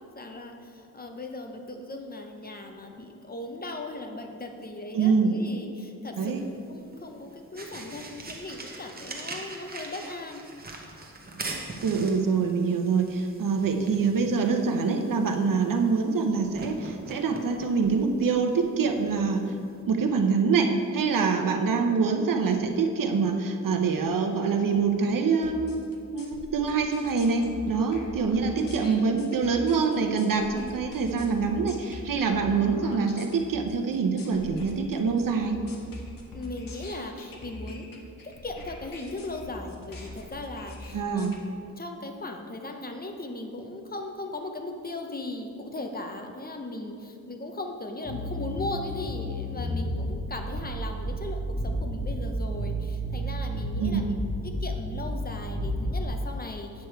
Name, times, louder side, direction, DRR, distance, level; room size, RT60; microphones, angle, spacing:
voice 1, 0.0-6.3 6.7-10.5 28.7-29.2 36.3-37.9 38.2-54.1 54.4-56.9, left 2 dB, 30° left, 4 dB, 0.7 m, -38 dB
voice 2, 4.9-5.3 6.2-6.4 11.8-19.4 19.9-25.8 26.1-35.6 40.9-41.3 53.8-54.0, right 5 dB, 80° right, 5 dB, 0.8 m, -25 dB
sound 1, 6.2-19.8, right 2 dB, 30° right, 0.8 m, -43 dB
sound 2, 25.4-41.4, left 2 dB, 85° left, 1.1 m, -44 dB
sound 3, 48.0-56.0, equal, 50° left, 1.9 m, -32 dB
8.3 x 6.7 x 4.5 m, 2.4 s
wide cardioid pair, 150°, 33 cm